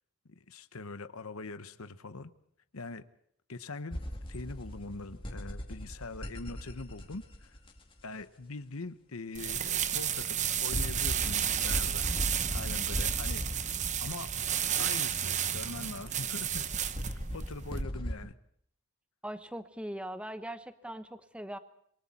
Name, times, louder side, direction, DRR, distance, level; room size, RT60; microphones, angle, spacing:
voice 1, 0.2-2.3 2.7-3.0 3.5-4.0 4.3-7.6 8.0-12.1 12.5-13.6 14.0-14.3 14.8-16.6 17.3-18.3, left 3 dB, 90° left, 11 dB, 1.1 m, -42 dB
sound 1, 3.9-8.0 9.8-9.9 10.6-15.2 16.9-18.2, equal, 25° left, 2.3 m, -38 dB
sound 2, 9.3-17.8, right 9 dB, 35° right, 0.8 m, -32 dB
voice 2, 19.2-21.6, right 1 dB, 5° right, 10 dB, 1.0 m, -40 dB
27.0 x 23.5 x 4.3 m, 0.68 s
head